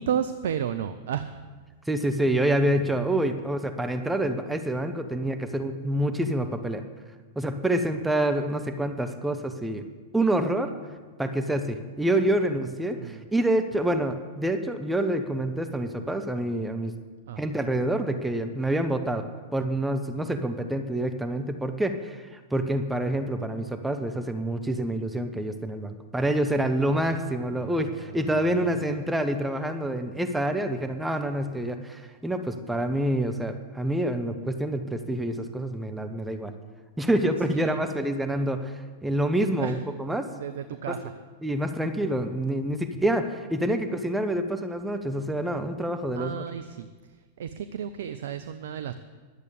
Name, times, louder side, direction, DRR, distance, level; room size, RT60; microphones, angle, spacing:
voice 1, 0.0-1.4 13.0-13.2 17.3-17.4 26.9-27.2 27.6-27.7 28.0-28.2 37.5-37.8 39.6-39.8 40.3-41.1 46.1-46.9 47.4-48.9, right 8 dB, 65° right, 10 dB, 0.6 m, -32 dB
voice 2, 1.9-6.8 7.4-9.9 10.1-10.7 11.2-16.9 17.4-19.2 19.5-36.5 37.0-40.3 41.4-46.4, right 1 dB, 5° right, 6 dB, 0.9 m, -27 dB
11.0 x 8.2 x 8.5 m, 1.4 s
figure-of-eight pair, 95°, 0 cm